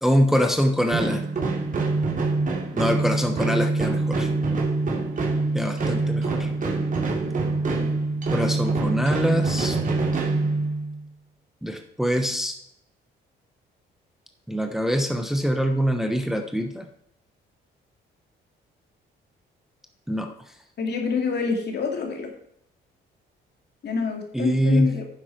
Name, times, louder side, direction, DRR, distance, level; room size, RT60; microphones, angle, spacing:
voice 1, 0.0-1.5 2.7-4.3 5.5-6.5 8.3-9.8 11.6-12.6 14.5-16.9 20.1-20.3 24.3-25.0, equal, ahead, 5 dB, 1.0 m, -24 dB
sound 1, 0.9-11.0, right 3 dB, 40° right, 2.6 m, -25 dB
voice 2, 20.8-22.3 23.8-25.1, left 5 dB, 60° left, 3 dB, 2.4 m, -26 dB
9.7 x 7.3 x 4.5 m, 0.73 s
cardioid pair, 90°, 20 cm